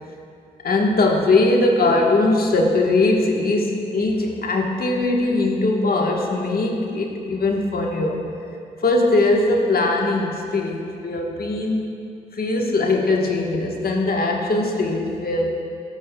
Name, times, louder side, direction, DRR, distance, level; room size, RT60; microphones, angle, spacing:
voice 1, 0.6-8.2 8.8-11.9 12.3-15.6, left 2 dB, 50° left, 0 dB, 1.4 m, -20 dB
13.5 x 7.2 x 2.3 m, 2.5 s
supercardioid pair, 45°, 20 cm